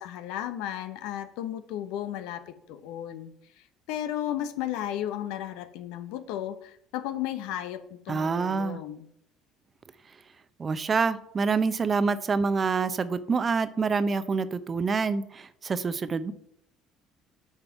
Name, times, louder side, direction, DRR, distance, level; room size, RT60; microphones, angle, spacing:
voice 1, 0.0-3.3 3.9-9.1, left 11 dB, 70° left, 11 dB, 0.9 m, -34 dB
voice 2, 8.1-8.8 10.6-16.3, right 4 dB, 35° right, 13 dB, 0.8 m, -26 dB
9.2 x 5.2 x 5.7 m, 0.71 s
hypercardioid pair, 60°, 0 cm